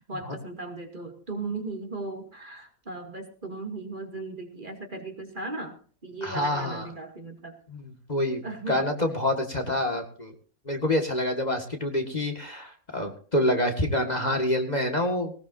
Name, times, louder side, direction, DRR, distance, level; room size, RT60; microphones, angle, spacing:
voice 1, 0.0-7.6 8.4-8.9, right 3 dB, 35° right, 3 dB, 2.6 m, -37 dB
voice 2, 6.2-6.9 7.7-10.3 10.7-15.3, left 1 dB, 30° left, 4 dB, 2.0 m, -27 dB
19.0 x 19.0 x 2.7 m, 0.40 s
omnidirectional pair, 1.5 m